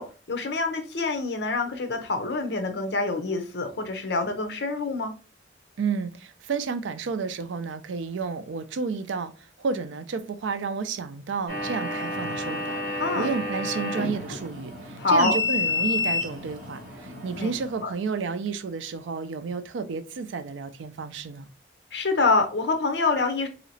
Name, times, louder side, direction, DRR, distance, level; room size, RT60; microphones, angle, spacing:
voice 1, 0.0-5.1 13.0-13.3 15.0-15.3 17.4-17.5 17.8-17.9 21.9-23.5, left 3 dB, 65° left, 0.6 m, -26 dB
voice 2, 5.8-9.3 9.6-21.5, right 5 dB, 90° right, 0.4 m, -31 dB
sound 1, 11.5-17.8, left 2 dB, 45° right, 1.7 m, -30 dB
3.1 x 2.8 x 2.7 m
head